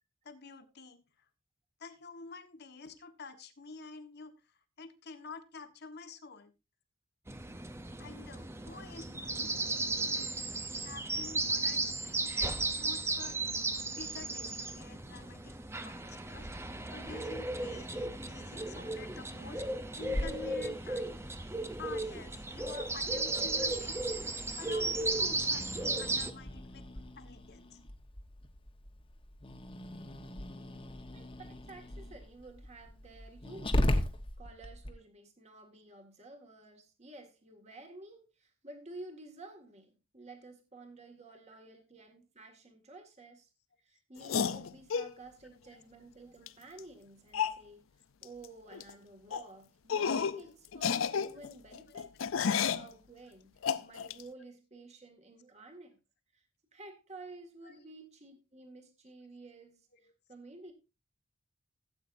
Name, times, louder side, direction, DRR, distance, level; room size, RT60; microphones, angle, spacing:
voice 1, 0.2-1.3 1.8-6.5 8.0-9.5 10.8-12.4 12.8-13.4 13.8-15.5 15.8-16.5 16.9-19.6 20.0-21.2 21.8-24.0 24.6-26.8 27.2-27.8 45.7-45.8 57.6-57.9, left 4 dB, 50° left, 8 dB, 1.3 m, -49 dB
sound 1, 7.3-26.3, right 2 dB, 10° right, 0.6 m, -35 dB
Growling, 20.1-34.9, left 1 dB, 25° left, 1.1 m, -39 dB
voice 2, 31.1-33.8 34.4-43.5 43.8-52.1 52.7-56.0 56.3-56.5 56.7-60.7, right 2 dB, 35° right, 5 dB, 1.9 m, -52 dB
sound 2, 44.2-45.1 46.5-46.6 46.8-46.9 47.3-47.6 48.2-48.5 48.7-48.9 49.3-49.5 49.9-50.4 50.7-52.9 53.6-54.2, left 7 dB, 75° left, 0.5 m, -31 dB
16.0 x 8.5 x 2.6 m, 0.26 s
head